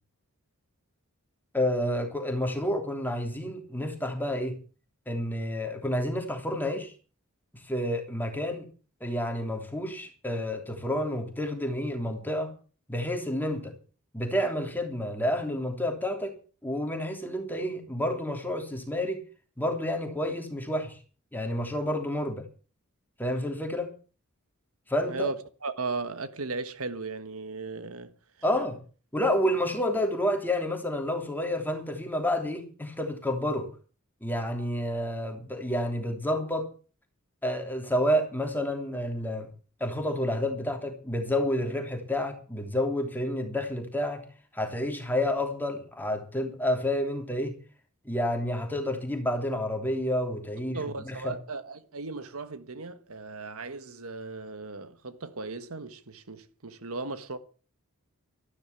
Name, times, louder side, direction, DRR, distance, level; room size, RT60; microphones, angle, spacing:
voice 1, 1.5-4.6 5.1-6.9 7.7-8.7 9.0-12.5 12.9-13.7 14.1-16.4 16.6-19.2 19.6-21.0 21.3-22.4 23.2-23.9 24.9-25.3 28.4-28.8 29.1-33.7 34.2-36.7 37.4-39.5 39.8-44.2 44.5-47.6 48.0-50.8 51.0-51.3, left 1 dB, 10° left, 3.2 m, -29 dB
voice 2, 25.1-28.1 50.7-57.4, right 3 dB, 70° right, 1.4 m, -36 dB
13.5 x 12.0 x 7.1 m
head